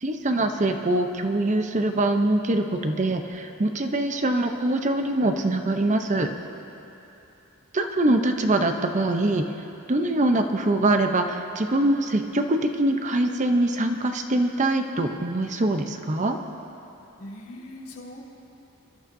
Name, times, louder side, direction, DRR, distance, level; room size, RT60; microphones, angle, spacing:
voice 1, 0.0-6.3 7.7-9.4 9.9-16.4, right 1 dB, 35° right, 5 dB, 0.7 m, -23 dB
voice 2, 17.2-18.2, left 1 dB, 80° left, -5 dB, 2.5 m, -40 dB
25.5 x 12.0 x 2.7 m, 2.9 s
head